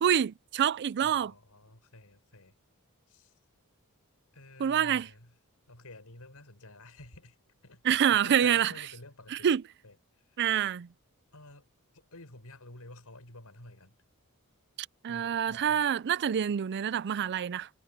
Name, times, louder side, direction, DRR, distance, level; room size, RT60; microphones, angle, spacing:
voice 1, 0.0-1.3 4.6-5.1 7.8-8.7 9.3-9.6 10.4-10.9 15.0-17.7, right 9 dB, 50° right, 0.4 m, -26 dB
voice 2, 1.0-2.6 3.1-3.3 4.3-5.3 5.7-7.4 7.6-9.5 9.8-10.4 11.3-11.7 11.9-14.0 15.1-15.9, left 2 dB, 80° left, 5.0 m, -50 dB
head